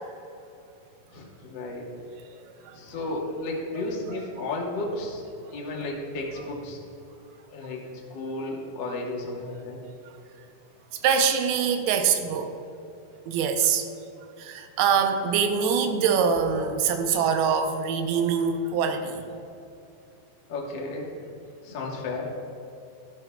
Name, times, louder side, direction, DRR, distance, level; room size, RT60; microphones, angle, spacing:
voice 1, 1.1-1.9 2.7-5.2 5.5-6.8 7.5-7.8 8.1-9.8 20.5-21.1 21.6-22.3, left 2 dB, 80° left, -2 dB, 1.0 m, -33 dB
voice 2, 11.0-12.5 13.3-13.9 14.4-19.3, right 6 dB, 85° right, 6 dB, 2.7 m, -24 dB
12.5 x 12.0 x 2.3 m, 2.7 s
omnidirectional pair, 4.4 m